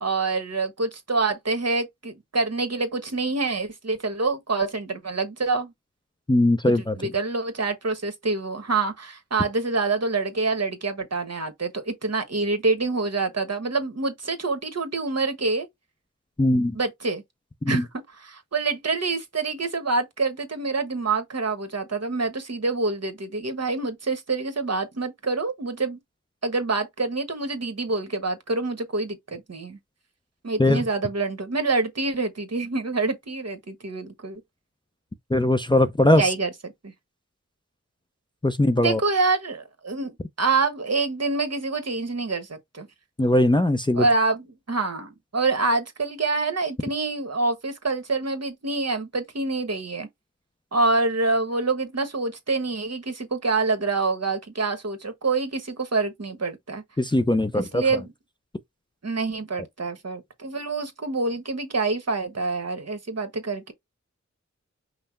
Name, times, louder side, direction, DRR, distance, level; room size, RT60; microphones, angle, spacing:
voice 1, 0.0-5.7 6.7-15.7 16.7-17.2 17.7-17.9 18.2-26.0 26.4-29.8 30.4-34.4 36.2-36.9 38.8-42.9 44.0-50.1 50.7-56.8 57.5-58.0 59.0-63.7, right 3 dB, 55° right, 1.2 m, -26 dB
voice 2, 6.3-7.1 16.4-16.8 17.6-17.9 30.6-30.8 35.3-36.3 38.4-39.0 43.2-44.1 57.0-57.8, left 1 dB, 15° left, 0.5 m, -20 dB
5.6 x 2.0 x 4.4 m
wide cardioid pair, 65°, 30 cm